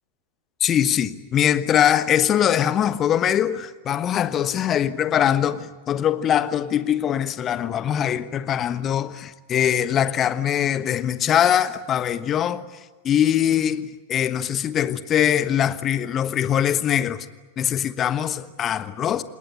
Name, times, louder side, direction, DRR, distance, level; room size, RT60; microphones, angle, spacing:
voice 1, 0.6-17.3 17.6-19.2, left 10 dB, 30° left, 1.3 m, -22 dB
27.0 x 20.5 x 9.7 m
figure-of-eight pair, 90°, 0 cm